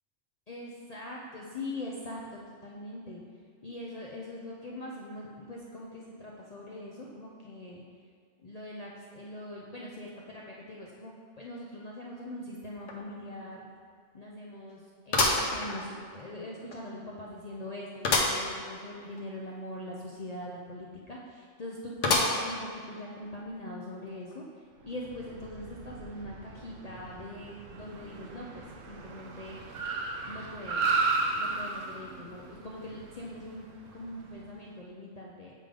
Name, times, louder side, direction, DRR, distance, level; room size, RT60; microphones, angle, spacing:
voice 1, 0.5-3.2 3.6-7.8 8.4-13.7 14.1-24.5 24.8-29.6 30.3-30.8 31.4-33.7 33.9-35.5, left 1 dB, 40° left, -4 dB, 0.6 m, -42 dB
sound 1, 12.9-13.0 13.4-13.5 15.1-16.2 16.7-16.8 18.0-18.5 18.9-19.0 19.2-19.3 22.0-22.7 23.2-23.3 24.3-24.4, left 2 dB, 85° left, 1.2 m, -27 dB
Car, 24.9-34.4, right 3 dB, 90° right, 1.0 m, -35 dB
7.6 x 3.6 x 5.1 m, 2.1 s
omnidirectional pair, 1.3 m